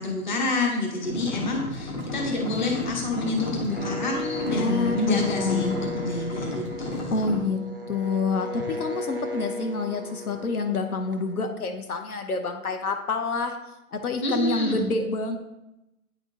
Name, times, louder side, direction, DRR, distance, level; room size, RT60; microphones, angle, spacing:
voice 1, 0.0-7.2 14.2-14.9, left 2 dB, 30° left, 0 dB, 0.8 m, -28 dB
sound 1, 1.0-7.4, left 1 dB, 50° left, 1.6 m, -34 dB
sound 2, 3.7-11.4, left 1 dB, 40° right, 0.4 m, -35 dB
voice 2, 4.5-5.8 7.1-7.6 7.9-13.6 13.9-15.4, left 4 dB, 70° left, 6 dB, 1.0 m, -27 dB
8.9 x 3.6 x 3.7 m, 0.91 s
hypercardioid pair, 175°, 45 cm